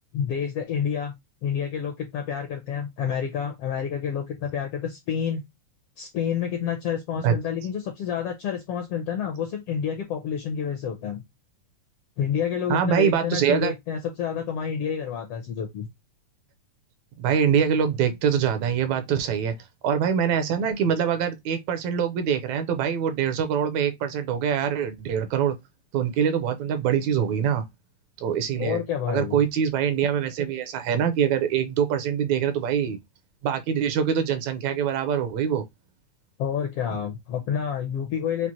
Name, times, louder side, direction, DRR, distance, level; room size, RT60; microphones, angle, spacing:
voice 1, 0.1-1.1 1.4-5.4 6.0-11.2 12.2-15.9 28.6-29.4 36.4-38.5, left 8 dB, 75° left, 1.4 m, -29 dB
voice 2, 12.7-13.7 17.2-19.6 19.8-25.6 25.9-27.7 28.2-28.8 29.1-33.0 33.4-35.6, right 8 dB, 75° right, 1.9 m, -24 dB
5.9 x 2.5 x 2.7 m
omnidirectional pair, 3.4 m